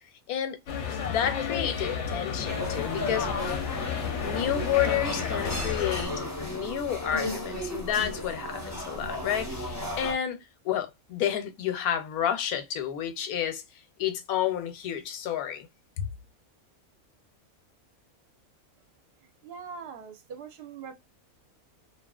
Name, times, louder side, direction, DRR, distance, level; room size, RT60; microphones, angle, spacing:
sound 1, 0.7-6.1, left 7 dB, 60° left, 0.8 m, -32 dB
voice 1, 1.0-3.3 4.2-10.4 10.6-13.6 14.0-15.7 16.0-16.1, left 10 dB, 85° left, 1.1 m, -30 dB
sound 2, 2.5-10.1, left 1 dB, 15° left, 0.6 m, -34 dB
voice 2, 19.2-20.9, right 6 dB, 55° right, 0.8 m, -42 dB
2.8 x 2.4 x 2.2 m
omnidirectional pair, 1.5 m